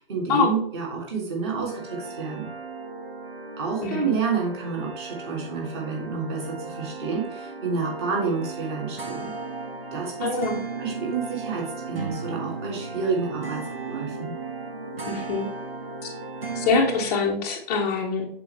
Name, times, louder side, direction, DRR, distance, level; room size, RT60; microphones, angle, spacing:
voice 1, 0.0-2.5 3.6-9.3 9.9-10.4 10.8-14.3, right 5 dB, 30° right, -1 dB, 1.9 m, -29 dB
sound 1, 1.7-17.0, right 4 dB, 80° right, 1.2 m, -36 dB
voice 2, 3.8-4.1 10.2-10.6 15.0-15.5 16.6-18.3, left 4 dB, 15° left, -3 dB, 0.7 m, -24 dB
6.8 x 4.3 x 3.3 m, 0.69 s
figure-of-eight pair, 140°, 29 cm